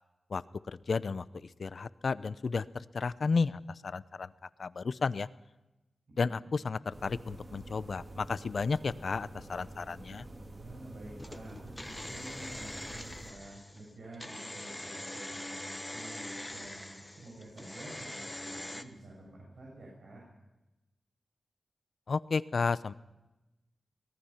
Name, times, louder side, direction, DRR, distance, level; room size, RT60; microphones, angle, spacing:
voice 1, 0.3-5.3 6.2-10.2 22.1-22.9, left 4 dB, 55° left, 17 dB, 0.7 m, -33 dB
voice 2, 6.2-6.5 10.6-20.2, right 1 dB, 75° right, -3 dB, 7.7 m, -49 dB
sound 1, 6.9-13.3, right 1 dB, 35° right, 2.7 m, -48 dB
sound 2, 11.2-18.8, left 1 dB, 10° left, 1.2 m, -43 dB
24.5 x 18.5 x 5.8 m, 1.0 s
wide cardioid pair, 145°, 0 cm